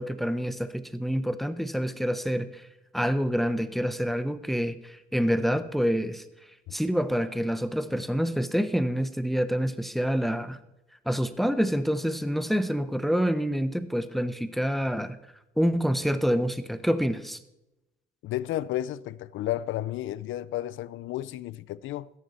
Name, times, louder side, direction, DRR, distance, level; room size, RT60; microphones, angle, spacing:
voice 1, 0.0-2.7 2.9-6.2 6.7-10.6 11.1-15.2 15.6-17.4, equal, ahead, 0.9 m, -27 dB
voice 2, 18.2-22.1, left 13 dB, 80° left, 0.5 m, -32 dB
13.5 x 10.5 x 4.2 m
cardioid pair, 90°, 20 cm